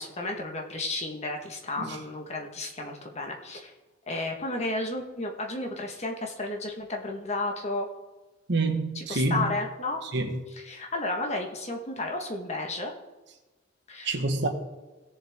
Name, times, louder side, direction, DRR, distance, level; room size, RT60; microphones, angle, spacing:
voice 1, 0.0-3.7 4.1-7.9 8.9-10.0 10.6-12.9 13.9-14.1, left 2 dB, 35° left, 1.4 m, -32 dB
voice 2, 8.5-9.6 10.0-10.4 14.0-14.5, right 2 dB, 60° right, 1.4 m, -27 dB
17.0 x 7.1 x 3.6 m
head